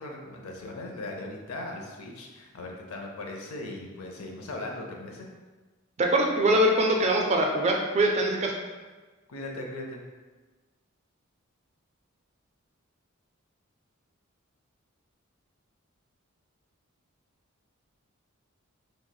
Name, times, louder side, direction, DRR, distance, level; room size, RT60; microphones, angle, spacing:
voice 1, 0.0-5.3 9.3-10.0, left 2 dB, 85° left, 1 dB, 0.5 m, -38 dB
voice 2, 6.0-8.5, right 1 dB, 30° right, 1 dB, 0.4 m, -23 dB
3.1 x 3.0 x 2.2 m, 1.3 s
head